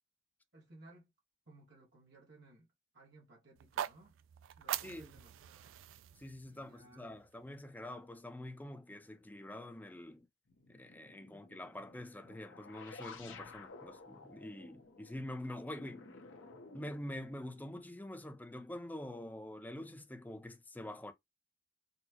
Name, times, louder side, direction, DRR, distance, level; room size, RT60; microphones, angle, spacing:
voice 1, 0.5-1.1 1.5-4.2 4.6-5.8 6.4-7.1 11.3-11.5, right 2 dB, 65° right, 1.3 m, -60 dB
sound 1, 3.6-7.7, right 11 dB, 80° right, 0.3 m, -44 dB
voice 2, 6.2-10.3 10.7-16.1 16.7-21.1, left 1 dB, 10° left, 0.4 m, -46 dB
sound 2, 10.5-17.8, left 4 dB, 80° left, 0.8 m, -54 dB
4.2 x 2.0 x 2.8 m
head